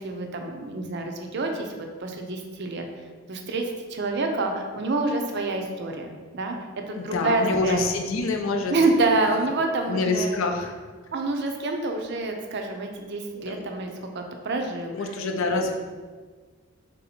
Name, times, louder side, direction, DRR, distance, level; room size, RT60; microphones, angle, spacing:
voice 1, 0.0-2.9 3.3-7.8 8.7-10.4 11.1-14.9, right 2 dB, 50° right, 3 dB, 0.5 m, -27 dB
voice 2, 6.9-8.7 9.9-10.8 13.3-13.6 14.9-15.7, left 3 dB, 65° left, 4 dB, 0.5 m, -26 dB
3.6 x 2.7 x 4.2 m, 1.4 s
head